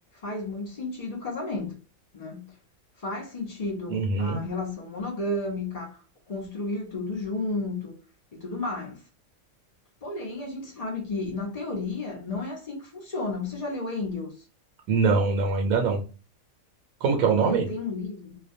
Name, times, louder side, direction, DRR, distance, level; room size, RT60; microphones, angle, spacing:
voice 1, 0.1-1.8 2.1-2.6 3.0-8.0 8.3-9.0 10.0-14.3 17.4-18.4, left 2 dB, 45° left, 0.5 m, -33 dB
voice 2, 3.9-4.4 14.9-16.0 17.0-17.7, right 4 dB, 80° right, 1.0 m, -23 dB
2.4 x 2.1 x 2.6 m
omnidirectional pair, 1.5 m